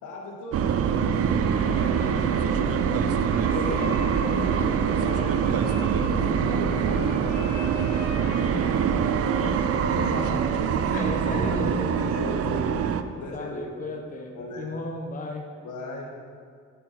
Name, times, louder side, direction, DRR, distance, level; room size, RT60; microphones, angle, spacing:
voice 1, 0.0-2.7 3.5-5.8 6.5-8.7 10.5-10.6 10.9-13.8 14.3-14.7 15.6-16.1, left 1 dB, 80° left, -1 dB, 1.4 m, -38 dB
sound 1, 0.5-13.0, right 7 dB, 50° right, 0.5 m, -24 dB
sound 2, 1.2-9.1, left 1 dB, 65° left, 1.4 m, -39 dB
voice 2, 3.7-4.6 8.5-9.0 9.3-10.4 11.0-12.2 13.3-15.4, left 3 dB, 25° left, 1 dB, 0.9 m, -36 dB
11.5 x 4.6 x 4.2 m, 2.1 s
cardioid pair, 90°, 30 cm